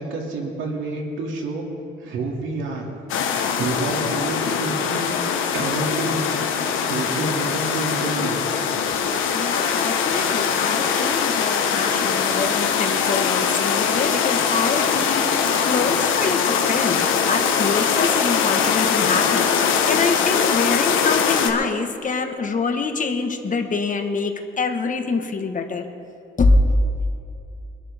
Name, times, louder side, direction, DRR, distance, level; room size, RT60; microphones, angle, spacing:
voice 1, 0.0-1.7 2.0-2.8 3.3-5.1 5.4-6.3 6.9-8.4, right 3 dB, 80° right, -1 dB, 2.6 m, -28 dB
sound 1, 3.1-21.5, left 6 dB, 85° left, 1.3 m, -22 dB
voice 2, 9.3-15.2 15.6-25.8 26.4-26.6, left 4 dB, 40° left, 5 dB, 1.5 m, -25 dB
23.5 x 11.0 x 3.6 m, 2.7 s
cardioid pair, 90°, 20 cm